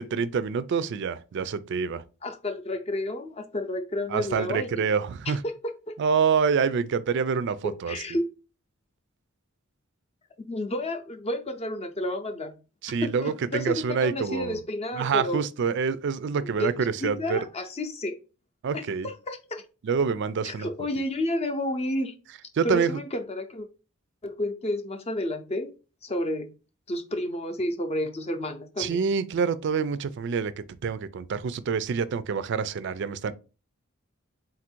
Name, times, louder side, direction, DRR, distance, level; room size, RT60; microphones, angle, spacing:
voice 1, 0.0-2.0 4.1-5.4 6.0-8.0 12.8-14.6 14.9-17.4 18.6-19.1 19.8-20.7 22.5-23.0 28.8-33.3, right 6 dB, 55° right, 0.4 m, -26 dB
voice 2, 2.2-4.7 5.3-6.0 7.6-8.3 10.5-12.5 13.0-15.4 16.4-16.7 17.0-18.1 18.7-19.6 20.5-22.1 22.6-23.7 24.2-25.7 26.0-26.5 26.9-29.0, left 1 dB, 30° left, 0.6 m, -31 dB
3.9 x 2.5 x 4.4 m
head